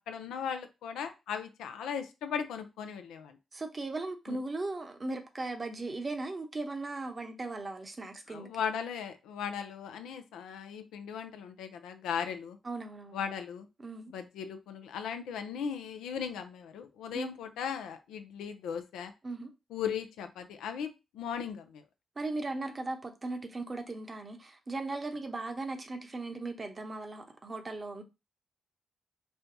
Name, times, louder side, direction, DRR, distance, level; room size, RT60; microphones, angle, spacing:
voice 1, 0.1-3.4 4.3-4.4 8.3-12.6 13.1-13.7 14.1-19.1 19.7-21.8, left 7 dB, 80° left, 0.4 m, -37 dB
voice 2, 3.5-8.5 12.6-13.2 13.8-14.1 17.1-17.3 19.2-19.5 22.2-28.0, right 2 dB, 40° right, 0.8 m, -38 dB
4.3 x 2.2 x 2.7 m
hypercardioid pair, 40°, 0 cm